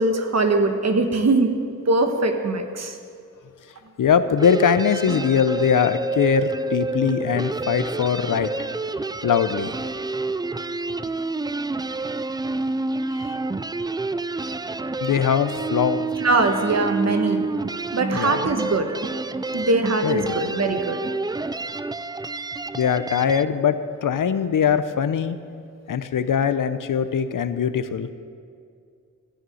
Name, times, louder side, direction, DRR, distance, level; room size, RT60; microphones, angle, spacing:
voice 1, 0.0-1.5 1.9-3.0 16.2-17.4 17.9-18.9 19.5-21.0, right 3 dB, 55° right, 6 dB, 1.3 m, -21 dB
voice 2, 4.0-8.5 9.2-9.7 13.2-13.4 15.0-16.0 18.1-18.4 20.0-20.4 22.7-23.8 24.0-25.4 25.9-28.1, left 7 dB, 80° left, 11 dB, 0.7 m, -21 dB
sound 1, 4.4-23.4, right 3 dB, 15° right, 0.3 m, -29 dB
14.0 x 6.6 x 9.2 m, 2.3 s
wide cardioid pair, 80°, 32 cm